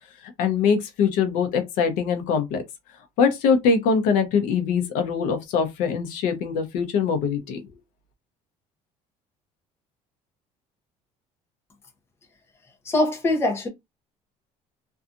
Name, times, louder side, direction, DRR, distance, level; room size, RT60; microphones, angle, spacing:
voice 1, 0.4-2.6 3.2-7.6, left 6 dB, 70° left, 0.7 m, -22 dB
voice 2, 12.8-13.7, left 2 dB, 15° left, 0.6 m, -22 dB
2.6 x 2.3 x 2.5 m
cardioid pair, 180°, 14 cm